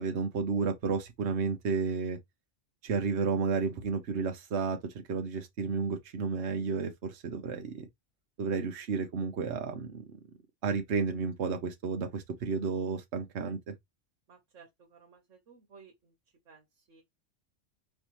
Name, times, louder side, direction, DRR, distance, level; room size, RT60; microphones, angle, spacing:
voice 1, 0.0-2.2 2.8-7.9 8.4-10.0 10.6-13.7, right 5 dB, 65° right, 1.1 m, -32 dB
voice 2, 14.3-16.1 16.4-17.0, right 5 dB, 80° right, 1.5 m, -57 dB
5.3 x 3.3 x 3.0 m
omnidirectional pair, 1.2 m